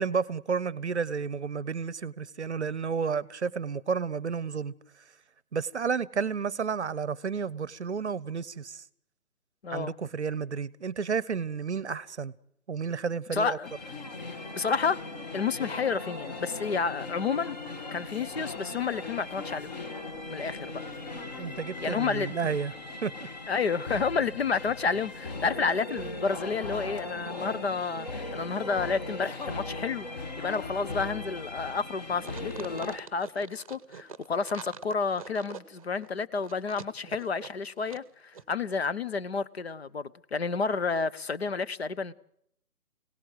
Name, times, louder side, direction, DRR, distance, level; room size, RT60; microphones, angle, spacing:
voice 1, 0.0-4.7 5.5-8.8 9.7-12.3 12.7-13.6 21.4-22.7 23.0-23.3, right 6 dB, 50° right, 0.8 m, -31 dB
voice 2, 9.6-9.9 13.3-13.7 14.5-15.0 15.3-17.6 17.9-19.7 20.3-20.7 21.8-22.6 23.5-30.1 30.4-42.1, left 5 dB, 45° left, 0.8 m, -30 dB
sound 1, 13.6-33.0, left 2 dB, 30° left, 1.4 m, -39 dB
sound 2, 32.2-38.1 38.3-38.4, right 6 dB, 25° right, 0.9 m, -45 dB
25.5 x 17.5 x 7.9 m
figure-of-eight pair, 150°, 44 cm